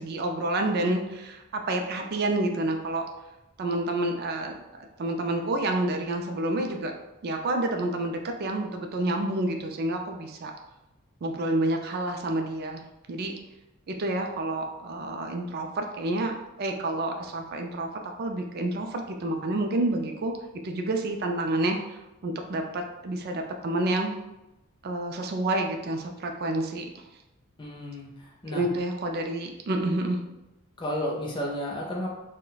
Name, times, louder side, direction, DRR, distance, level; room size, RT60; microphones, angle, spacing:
voice 1, 0.0-3.1 3.6-6.9 7.2-10.5 11.2-12.8 13.1-13.4 13.9-17.9 18.2-20.3 20.6-24.1 24.8-27.0 28.5-30.2, right 2 dB, 45° right, 4 dB, 0.3 m, -29 dB
voice 2, 27.6-28.6 30.8-32.1, equal, 20° left, -2 dB, 0.4 m, -32 dB
2.3 x 2.1 x 3.9 m, 0.98 s
head